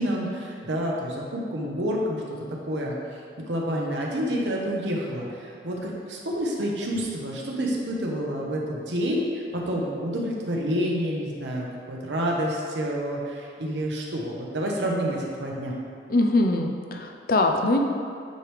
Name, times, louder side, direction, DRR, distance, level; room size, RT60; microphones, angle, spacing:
voice 1, 0.0-2.2 2.6-2.9 3.5-15.7, equal, 80° right, -2 dB, 0.9 m, -28 dB
voice 2, 16.1-17.8, left 2 dB, 50° left, 3 dB, 0.5 m, -22 dB
9.1 x 3.2 x 3.4 m, 2.3 s
head